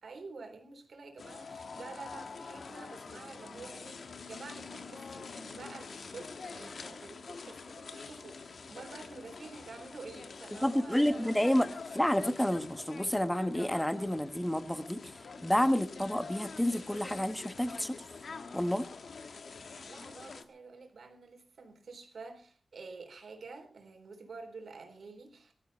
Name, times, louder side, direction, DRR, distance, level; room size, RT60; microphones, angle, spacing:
voice 1, 0.0-11.5 19.3-25.5, right 4 dB, 80° right, 5 dB, 3.7 m, -49 dB
sound 1, 1.2-20.4, left 4 dB, 80° left, 1.4 m, -46 dB
voice 2, 10.6-11.7 11.9-15.1 15.4-18.0 18.5-18.9, equal, 5° left, 10 dB, 1.4 m, -29 dB
19.0 x 13.0 x 4.2 m, 0.42 s
wide cardioid pair, 80°, 0 cm